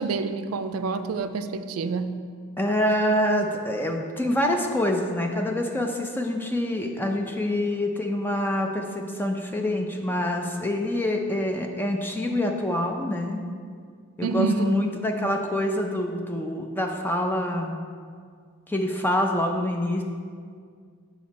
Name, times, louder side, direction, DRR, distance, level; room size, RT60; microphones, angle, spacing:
voice 1, 0.0-2.2 14.2-14.7, right 4 dB, 90° right, 10 dB, 0.4 m, -27 dB
voice 2, 2.6-13.4 14.2-17.8 18.7-20.0, left 1 dB, 10° left, 2 dB, 0.5 m, -26 dB
7.7 x 5.8 x 4.2 m, 2.1 s
head